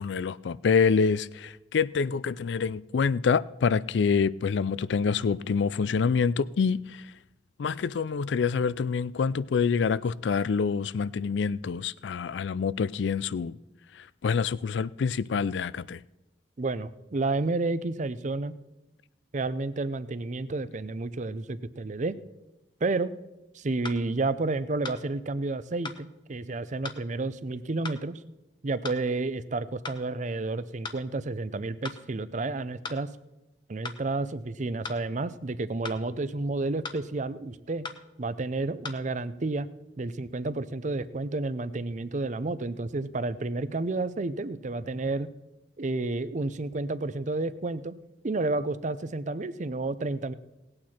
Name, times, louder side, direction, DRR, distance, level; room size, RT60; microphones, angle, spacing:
voice 1, 0.0-7.0 7.6-13.6 14.2-16.0, left 5 dB, 70° left, 0.4 m, -26 dB
voice 2, 16.6-18.5 19.3-22.1 22.8-23.1 23.5-28.2 28.6-33.1 33.7-37.9 38.2-39.7 40.0-45.3 45.8-47.9 48.2-50.3, right 3 dB, 40° right, 0.6 m, -31 dB
sound 1, 23.8-24.0 24.8-25.0 25.8-26.0 26.8-27.0 27.8-28.0 28.8-29.0 29.8-30.0 30.8-31.0 31.8-32.0 32.8-33.0 33.8-34.0 34.8-35.0 35.8-36.0 36.8-37.0 37.8-38.0 38.8-38.9, left 4 dB, 25° left, 0.8 m, -37 dB
18.5 x 8.7 x 4.4 m
head